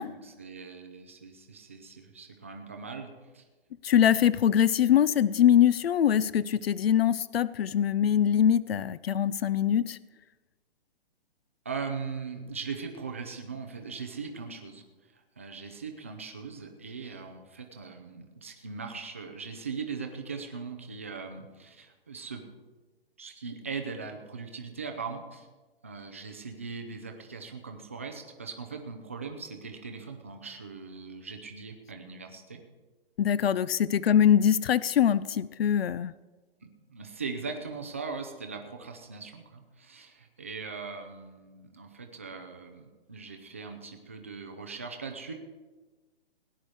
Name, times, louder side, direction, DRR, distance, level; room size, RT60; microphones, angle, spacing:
voice 1, 0.1-3.4 11.6-14.8 15.1-22.4 23.2-25.5 25.8-32.6 34.1-34.3 36.6-45.3, right 5 dB, 15° right, 4 dB, 0.4 m, -40 dB
voice 2, 3.8-10.0 33.2-36.1, left 9 dB, 70° left, 19 dB, 0.5 m, -23 dB
17.5 x 10.0 x 4.7 m, 1.3 s
hypercardioid pair, 170°, 31 cm